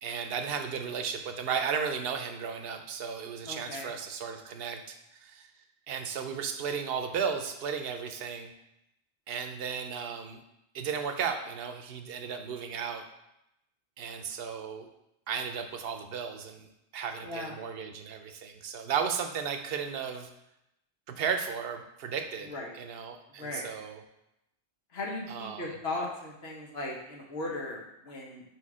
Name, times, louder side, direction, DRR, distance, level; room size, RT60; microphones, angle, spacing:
voice 1, 0.0-5.5 5.9-8.5 9.3-10.4 10.7-13.1 14.0-14.9 15.3-16.7 16.9-20.3 21.1-24.0 25.3-25.8, right 6 dB, 65° right, 6 dB, 0.9 m, -34 dB
voice 2, 3.5-3.9 17.2-17.5 22.5-22.7 23.3-23.7 24.9-28.4, left 2 dB, 70° left, -2 dB, 1.5 m, -37 dB
4.7 x 4.4 x 4.8 m, 0.85 s
omnidirectional pair, 1.1 m